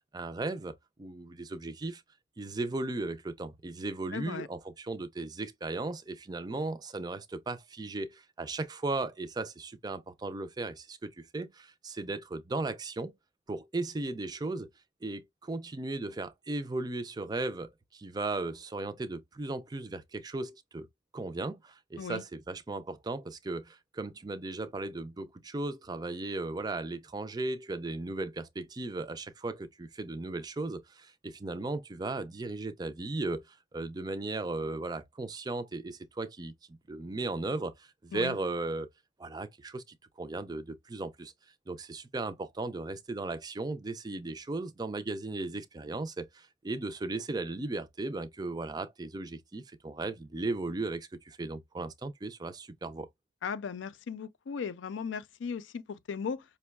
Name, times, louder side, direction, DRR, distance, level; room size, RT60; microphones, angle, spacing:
voice 1, 0.1-2.0 2.4-13.1 13.5-14.7 15.0-20.9 21.1-38.9 39.2-39.8 40.2-41.3 41.7-53.1, right 2 dB, 20° right, 0.4 m, -36 dB
voice 2, 4.1-4.5 22.0-22.2 38.1-38.4 53.4-56.4, left 6 dB, 75° left, 0.4 m, -37 dB
5.2 x 2.1 x 2.2 m
head